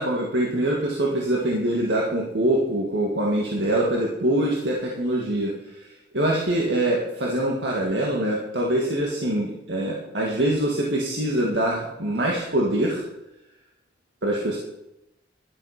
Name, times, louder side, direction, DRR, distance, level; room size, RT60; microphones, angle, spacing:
voice 1, 0.0-5.9 6.1-13.0 14.2-14.6, right 1 dB, 70° right, -2 dB, 1.9 m, -24 dB
12.0 x 11.5 x 5.0 m, 0.92 s
head